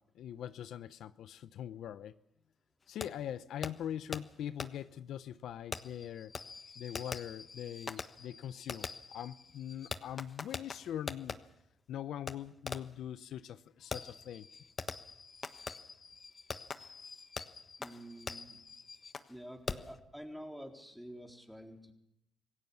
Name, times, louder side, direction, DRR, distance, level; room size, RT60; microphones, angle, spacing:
voice 1, 0.0-2.2 2.9-6.3 6.8-11.4 11.9-14.5, left 10 dB, 75° left, 0.7 m, -42 dB
Fireworks, 3.0-3.1 3.6-3.7 4.1-4.2 4.6-4.7 5.7-11.4 12.3-12.4 12.7-13.0 13.9-19.3 19.7-20.0, left 5 dB, 40° left, 1.3 m, -43 dB
voice 2, 17.8-18.6 19.3-21.9, equal, ahead, 3.9 m, -48 dB
26.0 x 17.5 x 7.2 m
cardioid pair, 90°, 0 cm